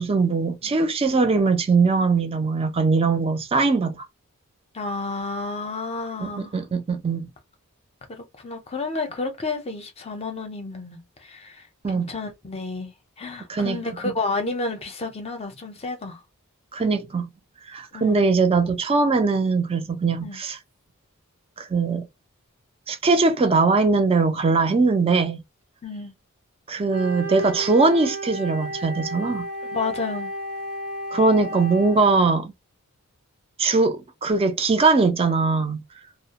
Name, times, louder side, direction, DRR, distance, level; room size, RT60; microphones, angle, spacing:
voice 1, 0.0-4.0 6.2-7.3 11.8-12.1 13.5-13.8 14.0-14.1 16.7-17.3 17.7-20.6 21.6-22.1 22.9-25.4 26.7-29.5 31.1-32.5 33.6-35.8, right 4 dB, 25° right, 0.4 m, -21 dB
voice 2, 4.7-6.6 8.1-16.2 17.9-18.2 20.2-20.4 25.8-26.1 29.6-30.3, left 3 dB, 25° left, 0.6 m, -31 dB
Wind instrument woodwind instrument, 26.9-32.1, right 1 dB, 75° right, 0.8 m, -33 dB
2.3 x 2.0 x 2.8 m
head